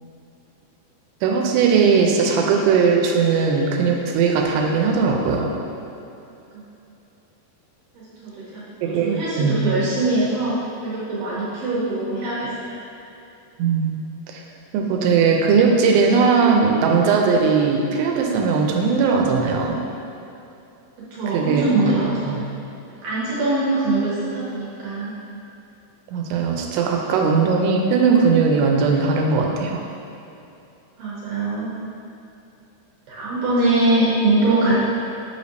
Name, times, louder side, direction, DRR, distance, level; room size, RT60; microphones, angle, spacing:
voice 1, 1.2-5.5 8.8-9.6 13.6-14.0 14.3-14.4 14.7-19.8 21.3-21.6 22.3-22.4 26.1-29.8, right 5 dB, 90° right, 1 dB, 2.8 m, -19 dB
voice 2, 7.9-12.8 21.0-22.4 23.0-25.1 31.0-31.7 33.1-34.8, right 2 dB, 70° right, -8 dB, 2.5 m, -23 dB
8.4 x 5.1 x 2.7 m, 2.8 s
omnidirectional pair, 4.9 m